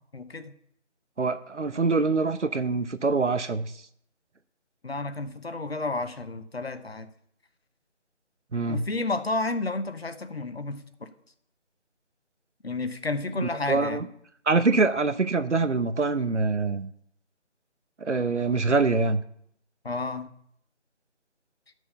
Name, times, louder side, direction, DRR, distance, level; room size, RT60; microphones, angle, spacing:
voice 1, 0.1-0.5 4.8-7.1 8.7-11.1 12.6-14.0 19.8-20.3, left 3 dB, 60° left, 10 dB, 1.0 m, -31 dB
voice 2, 1.2-3.7 8.5-8.8 13.4-14.1 14.5-16.9 18.0-19.2, right 3 dB, 75° right, 12 dB, 0.9 m, -24 dB
11.5 x 6.3 x 5.6 m, 0.69 s
figure-of-eight pair, 160°, 35 cm